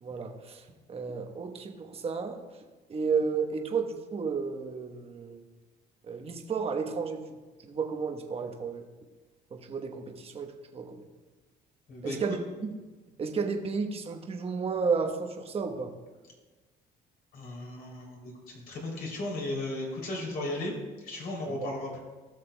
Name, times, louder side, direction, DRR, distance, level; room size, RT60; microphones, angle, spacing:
voice 1, 0.0-2.4 2.9-5.4 6.1-7.3 7.6-8.8 9.5-11.1 12.0-12.4 12.6-12.7 13.2-15.9 21.5-21.6, right 5 dB, 35° right, 4 dB, 1.1 m, -32 dB
voice 2, 11.9-12.4 17.3-22.0, left 1 dB, 60° left, -1 dB, 3.0 m, -36 dB
17.5 x 6.6 x 2.2 m, 1.3 s
cardioid pair, 110°, 17 cm